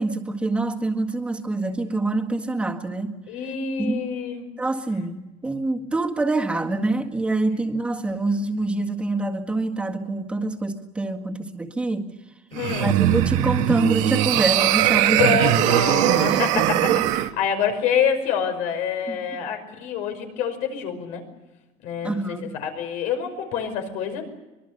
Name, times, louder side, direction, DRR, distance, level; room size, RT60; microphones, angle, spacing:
voice 1, 0.0-3.2 3.8-4.1 4.6-12.1 12.8-15.4 16.0-17.0 19.1-19.2 22.0-22.5, right 2 dB, 10° right, 2 dB, 1.8 m, -26 dB
voice 2, 3.3-4.4 12.5-12.9 15.2-21.2 21.8-24.2, left 7 dB, 80° left, 6 dB, 5.4 m, -26 dB
sound 1, 12.5-17.3, right 13 dB, 80° right, 1.3 m, -20 dB
24.5 x 22.5 x 6.7 m, 1.1 s
cardioid pair, 175°, 12 cm